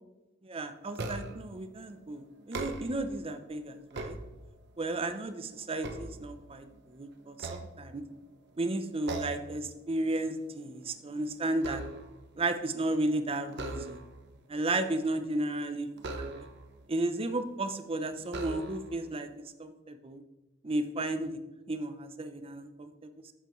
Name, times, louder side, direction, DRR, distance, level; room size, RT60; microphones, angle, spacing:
voice 1, 0.4-4.2 4.8-8.0 8.6-11.8 12.4-14.0 14.5-15.9 16.2-16.5 16.9-19.3 19.6-20.2 20.6-21.4 21.7-23.1, right 2 dB, 30° right, 9 dB, 0.6 m, -33 dB
sound 1, 0.9-1.5 2.4-3.2 3.7-4.8 5.3-6.8 7.3-8.3 9.1-9.6 9.9-10.2 10.6-12.3 13.5-14.3 16.0-16.8 17.5-17.6 18.3-19.0, right 2 dB, 60° right, 0.8 m, -40 dB
10.0 x 7.4 x 3.1 m, 1.1 s
head